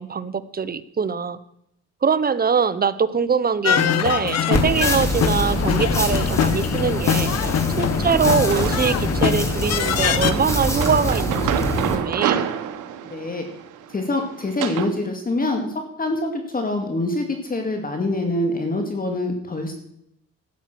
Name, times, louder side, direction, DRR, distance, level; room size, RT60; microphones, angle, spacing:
voice 1, 0.0-1.4 2.0-12.4, right 6 dB, 30° right, 15 dB, 0.9 m, -23 dB
sound 1, 3.6-10.3, left 9 dB, 60° left, 1.0 m, -23 dB
sound 2, 4.5-12.0, equal, 10° left, 2.9 m, -25 dB
sound 3, 8.5-9.1 9.8-14.9, right 9 dB, 85° right, 1.2 m, -28 dB
voice 2, 13.0-13.4 13.9-15.7 16.0-19.7, left 2 dB, 30° left, 4 dB, 2.2 m, -25 dB
13.0 x 9.0 x 6.1 m, 0.76 s
cardioid pair, 90°, 30 cm